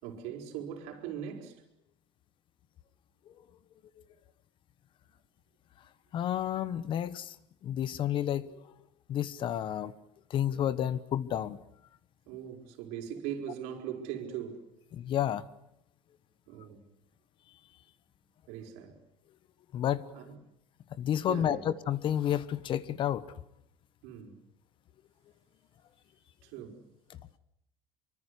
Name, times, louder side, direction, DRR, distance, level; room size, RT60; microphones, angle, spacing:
voice 1, 0.0-1.6 12.3-14.6 16.5-16.8 18.5-19.0 20.1-20.4 21.2-21.7 24.0-24.4 26.4-26.8, right 9 dB, 75° right, 5.1 m, -40 dB
voice 2, 6.1-7.3 7.6-8.6 9.1-9.9 10.3-11.6 14.9-15.4 19.7-20.0 21.0-23.2, left 10 dB, 45° left, 1.2 m, -30 dB
24.5 x 24.5 x 8.3 m
supercardioid pair, 125°, 12 cm